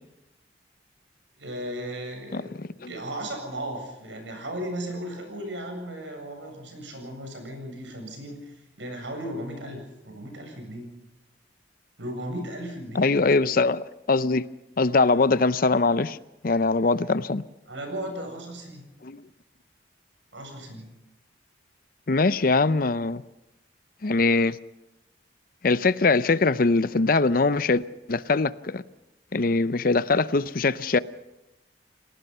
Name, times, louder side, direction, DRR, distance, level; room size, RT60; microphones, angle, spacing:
voice 1, 1.4-2.5 2.9-10.9 12.0-13.1 17.7-18.8 20.3-20.9, right 1 dB, 90° right, 7.9 m, -36 dB
voice 2, 2.3-2.9 12.9-14.5 14.8-16.2 16.4-17.4 19.0-19.2 22.1-23.2 24.0-24.6 25.6-27.8 28.1-28.8 29.3-31.0, left 3 dB, 50° left, 0.6 m, -22 dB
28.5 x 18.0 x 5.6 m
head